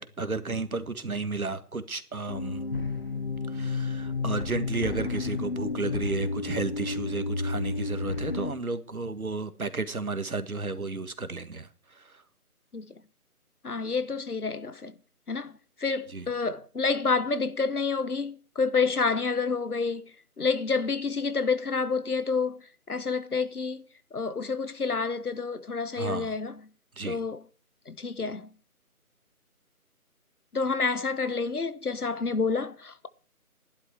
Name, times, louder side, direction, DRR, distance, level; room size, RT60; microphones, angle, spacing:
voice 1, 0.0-2.6 3.5-11.7 11.9-12.2 16.1-16.3 25.9-26.3 27.0-27.2, right 3 dB, 70° right, 1.7 m, -33 dB
sound 1, 2.3-8.5, left 3 dB, 40° left, 1.1 m, -31 dB
voice 2, 13.6-14.9 15.3-15.5 15.8-20.1 20.4-22.6 22.9-23.8 24.1-26.6 27.0-27.4 27.9-28.5 30.5-33.1, left 4 dB, 80° left, 1.3 m, -28 dB
13.5 x 11.5 x 4.7 m
figure-of-eight pair, 160°, 45 cm